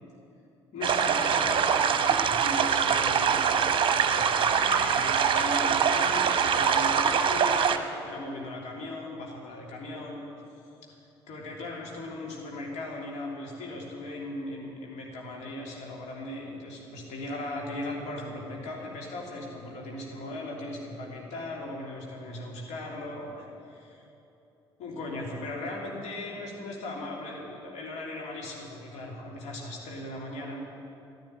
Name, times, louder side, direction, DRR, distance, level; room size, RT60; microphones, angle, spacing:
voice 1, 0.7-10.2 11.3-24.0 24.8-30.6, left 1 dB, 60° left, -2 dB, 3.2 m, -38 dB
sound 1, 0.8-7.8, right 7 dB, 40° right, 1.0 m, -24 dB
14.5 x 10.5 x 9.1 m, 2.8 s
figure-of-eight pair, 45°, 14 cm